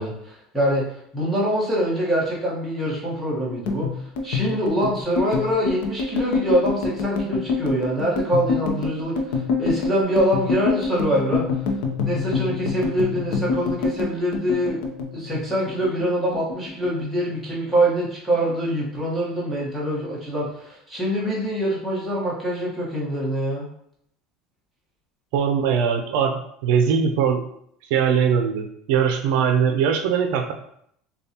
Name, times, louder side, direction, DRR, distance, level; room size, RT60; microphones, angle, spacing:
voice 1, 0.0-11.4 12.0-14.8 15.1-23.7, equal, ahead, -7 dB, 1.2 m, -24 dB
sound 1, 3.5-16.1 16.3-17.4 17.7-18.0 18.3-19.0, left 4 dB, 70° left, 0.7 m, -26 dB
voice 2, 25.3-26.3 26.6-27.4 27.9-30.5, right 7 dB, 70° right, 5 dB, 0.5 m, -21 dB
6.7 x 2.3 x 2.9 m, 0.70 s
cardioid pair, 170°, 0 cm